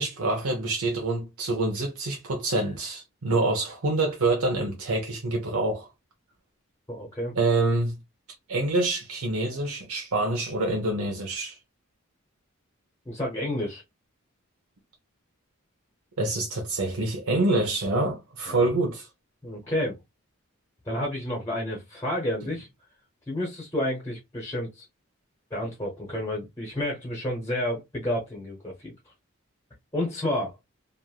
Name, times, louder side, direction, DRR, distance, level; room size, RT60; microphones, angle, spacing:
voice 1, 0.0-5.9 7.3-8.0 8.5-11.6 16.2-19.1, right 2 dB, 85° right, 0.7 m, -26 dB
voice 2, 6.9-7.3 13.1-13.8 18.5-18.7 19.4-20.0 20.8-22.7 23.3-24.8 25.5-28.9 29.9-30.5, left 1 dB, 10° left, 0.8 m, -30 dB
3.1 x 2.5 x 2.3 m
head